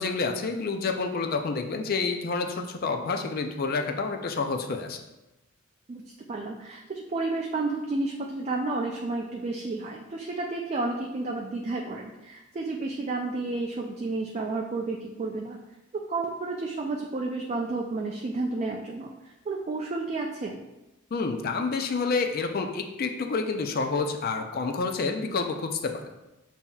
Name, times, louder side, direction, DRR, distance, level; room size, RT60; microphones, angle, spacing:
voice 1, 0.0-5.0 21.1-26.0, left 4 dB, 45° left, 5 dB, 0.4 m, -28 dB
voice 2, 6.3-15.6 15.9-20.6, right 3 dB, 30° right, 0 dB, 0.3 m, -31 dB
7.0 x 2.7 x 2.3 m, 0.98 s
head